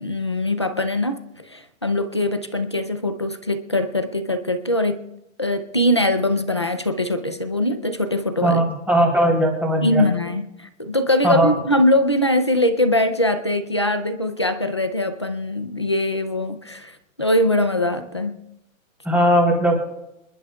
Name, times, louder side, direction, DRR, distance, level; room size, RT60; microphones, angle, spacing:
voice 1, 0.0-5.0 5.4-8.6 9.8-18.4, left 1 dB, 25° left, 8 dB, 0.3 m, -22 dB
voice 2, 8.4-10.0 11.2-11.5 19.0-19.8, equal, 5° right, -3 dB, 3.1 m, -18 dB
27.5 x 12.0 x 2.3 m, 0.86 s
hypercardioid pair, 175°, 40 cm